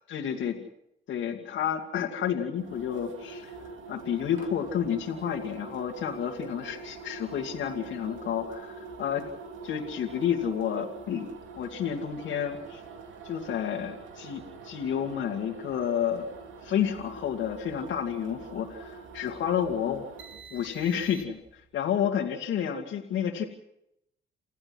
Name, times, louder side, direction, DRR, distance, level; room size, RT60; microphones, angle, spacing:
voice 1, 0.1-0.6 1.1-3.5 3.9-9.3 9.6-11.3 11.6-12.8 13.2-16.3 16.6-20.0 20.5-23.4, left 8 dB, 75° left, 1 dB, 2.4 m, -30 dB
sound 1, 2.6-21.6, right 4 dB, 75° right, 2.6 m, -45 dB
29.5 x 15.0 x 6.3 m, 0.80 s
cardioid pair, 90°, 20 cm